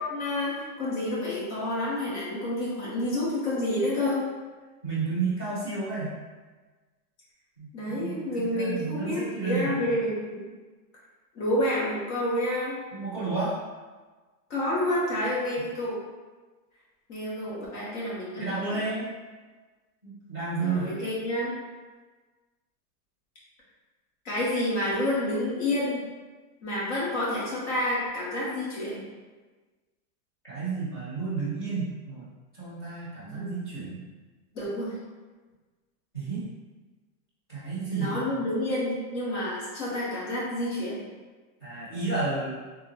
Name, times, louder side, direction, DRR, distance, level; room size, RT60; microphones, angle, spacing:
voice 1, 0.0-4.3 7.7-10.4 11.3-12.8 14.5-16.0 17.1-18.9 20.6-21.5 24.2-26.1 26.6-29.0 33.2-33.5 34.5-34.9 37.9-41.0, left 1 dB, 45° left, -8 dB, 1.3 m, -29 dB
voice 2, 4.8-6.1 7.6-7.7 8.0-8.2 8.5-9.7 12.9-13.5 18.4-19.1 20.0-20.9 30.4-32.3 32.5-34.0 36.1-36.4 37.5-38.2 41.6-42.6, right 4 dB, 20° left, -14 dB, 0.3 m, -31 dB
3.3 x 2.2 x 3.1 m, 1.3 s
supercardioid pair, 175°, 48 cm